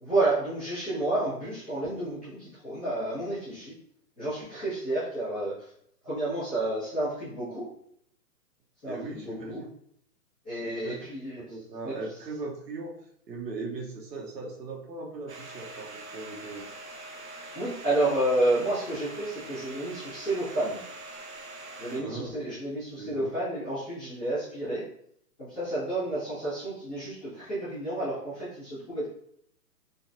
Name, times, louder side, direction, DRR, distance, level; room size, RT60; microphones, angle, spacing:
voice 1, 0.0-3.7 4.2-5.7 6.0-7.7 8.8-9.6 10.4-11.4 11.8-11.9 17.5-20.8 21.8-24.8 25.4-29.1, right 1 dB, 5° left, -18 dB, 0.5 m, -30 dB
voice 2, 8.8-9.7 10.6-11.1 11.4-13.0 13.3-16.6 22.0-22.3 23.0-23.3, right 3 dB, 90° right, 0 dB, 1.1 m, -39 dB
Domestic sounds home sounds, 15.3-22.0, right 2 dB, 45° right, 0.5 m, -43 dB
3.8 x 2.5 x 2.5 m, 0.68 s
hypercardioid pair, 155°, 48 cm